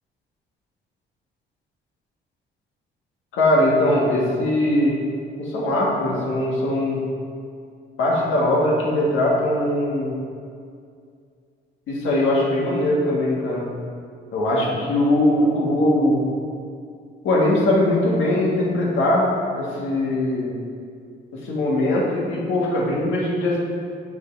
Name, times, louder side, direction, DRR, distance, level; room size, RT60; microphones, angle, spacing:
voice 1, 3.3-5.0 5.4-7.0 8.0-10.2 11.9-13.7 14.3-16.2 17.2-19.3 19.5-20.5 21.3-23.6, left 1 dB, 85° left, -4 dB, 1.6 m, -20 dB
7.8 x 3.7 x 4.5 m, 2.3 s
cardioid pair, 90°, 20 cm